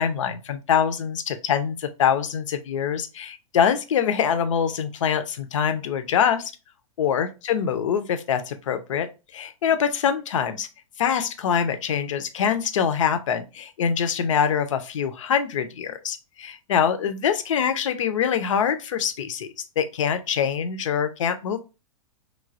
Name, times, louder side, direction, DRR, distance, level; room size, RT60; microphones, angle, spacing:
voice 1, 0.0-6.5 7.0-10.7 11.0-19.5 19.8-21.6, left 8 dB, 60° left, 0.5 m, -24 dB
3.1 x 2.2 x 2.4 m
figure-of-eight pair, 100°, 18 cm